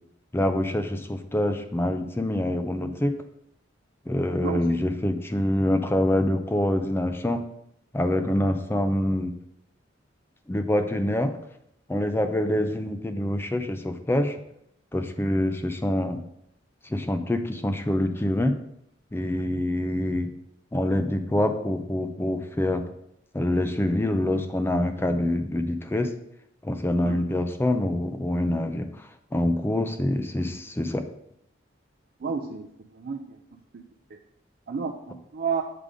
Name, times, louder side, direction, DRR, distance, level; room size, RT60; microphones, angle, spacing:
voice 1, 0.3-3.1 4.1-7.4 7.9-9.3 10.5-11.4 11.9-14.4 14.9-16.2 16.9-18.6 19.1-20.3 20.7-22.8 23.3-26.1 26.6-31.0, left 1 dB, 10° left, 7 dB, 0.4 m, -25 dB
voice 2, 32.2-32.7 32.9-33.4 33.7-33.8 34.1-34.2 34.7-35.6, right 5 dB, 50° right, 2 dB, 0.4 m, -31 dB
6.7 x 3.8 x 4.9 m, 0.76 s
head